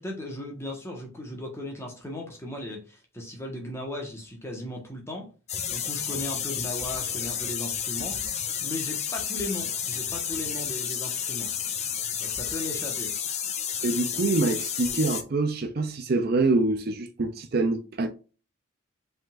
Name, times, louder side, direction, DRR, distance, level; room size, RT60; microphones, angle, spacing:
voice 1, 0.0-5.3 5.7-8.2 8.6-11.5 12.2-13.1, left 1 dB, 10° left, 1.3 m, -37 dB
sound 1, 5.5-15.2, left 8 dB, 30° left, 0.5 m, -31 dB
voice 2, 13.8-18.1, right 3 dB, 45° right, 0.5 m, -25 dB
5.0 x 3.8 x 2.4 m
head